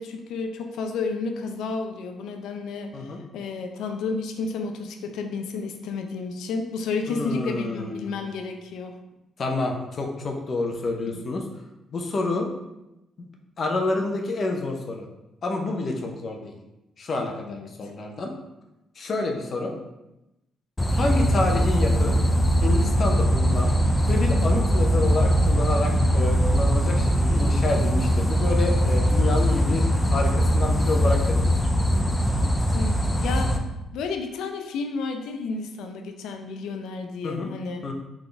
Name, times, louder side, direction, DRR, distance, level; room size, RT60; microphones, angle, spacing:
voice 1, 0.0-8.9 17.4-17.7 32.7-33.6 33.9-37.8, left 4 dB, 80° left, 5 dB, 0.5 m, -31 dB
voice 2, 7.1-8.2 9.4-11.4 11.9-12.5 13.2-13.3 13.6-15.1 15.4-16.5 17.0-18.3 19.0-19.7 20.9-22.2 22.6-23.7 24.1-29.8 30.1-31.4 37.2-37.5 37.8-37.9, left 2 dB, 50° left, 2 dB, 0.8 m, -28 dB
sound 1, 20.8-33.6, equal, 15° left, 0.5 m, -21 dB
4.0 x 3.6 x 3.4 m, 0.94 s
cardioid pair, 90°, 0 cm